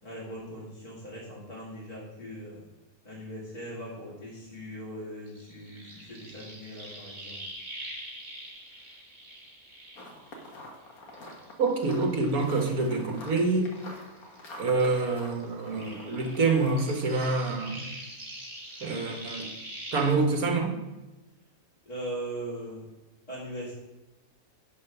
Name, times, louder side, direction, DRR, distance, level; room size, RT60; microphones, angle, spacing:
voice 1, 0.0-2.6 3.0-7.4 21.9-22.9 23.3-23.7, right 1 dB, 25° left, -8 dB, 2.2 m, -40 dB
sound 1, 5.3-10.8 11.1-14.5 14.7-20.1, right 1 dB, 30° right, 1.8 m, -44 dB
sound 2, 10.0-17.4, left 1 dB, 75° left, 1.9 m, -46 dB
voice 2, 11.6-13.7 14.6-17.8 18.8-19.5 19.9-20.7, right 3 dB, 75° right, 3 dB, 1.8 m, -26 dB
10.0 x 4.5 x 5.8 m, 1.0 s
omnidirectional pair, 1.5 m